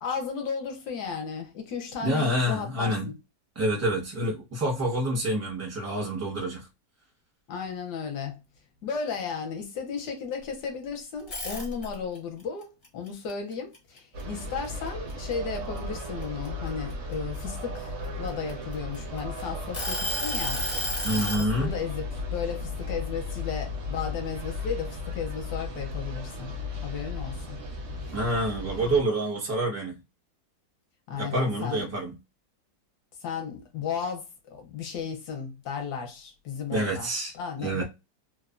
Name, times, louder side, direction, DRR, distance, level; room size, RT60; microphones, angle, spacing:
voice 1, 0.0-3.1 7.5-8.4 8.8-20.7 21.4-27.6 31.1-31.9 33.2-37.1 37.3-37.8, left 6 dB, 70° left, 1.2 m, -34 dB
voice 2, 2.0-3.1 3.5-6.7 21.0-21.7 28.1-29.9 31.2-32.2 36.7-37.3 37.6-37.8, right 1 dB, 15° right, 0.5 m, -27 dB
sound 1, 11.2-12.2 12.6-14.4 14.9-15.1 15.5-17.4 18.1-19.2 19.7-21.5, equal, 30° left, 0.7 m, -31 dB
sound 2, 14.1-29.0, left 2 dB, 75° right, 0.6 m, -35 dB
3.3 x 2.1 x 2.4 m
omnidirectional pair, 2.0 m